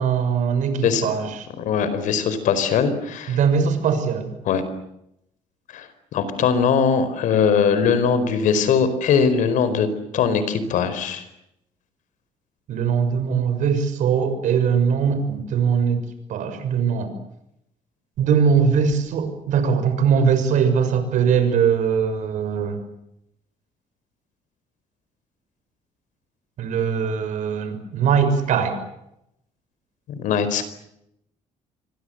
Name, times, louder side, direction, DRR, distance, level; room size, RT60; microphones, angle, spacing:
voice 1, 0.0-1.5 3.3-4.3 12.7-16.0 16.3-17.1 18.2-22.8 26.6-28.8, right 6 dB, 70° right, 9 dB, 6.5 m, -21 dB
voice 2, 1.6-3.4 4.4-4.6 5.7-11.2 30.1-30.7, left 6 dB, 75° left, 13 dB, 4.7 m, -21 dB
27.0 x 24.5 x 8.0 m, 0.80 s
cardioid pair, 135°, 13 cm